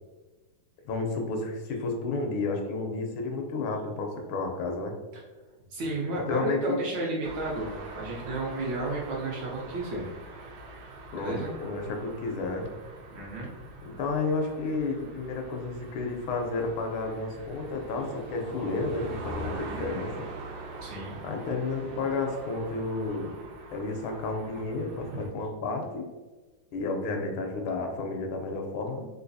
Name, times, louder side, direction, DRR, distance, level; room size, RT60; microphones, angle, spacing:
voice 1, 0.8-4.9 6.1-6.8 11.1-12.7 14.0-20.3 21.2-23.4 23.7-26.1 26.7-29.1, left 3 dB, 80° left, 3 dB, 1.4 m, -31 dB
voice 2, 5.7-10.1 11.1-11.5 13.1-13.5 20.8-21.2 25.1-25.2, right 2 dB, 65° right, -4 dB, 1.2 m, -33 dB
sound 1, 7.2-25.3, right 2 dB, 85° right, 1.6 m, -43 dB
3.9 x 2.6 x 2.6 m, 1.2 s
omnidirectional pair, 2.4 m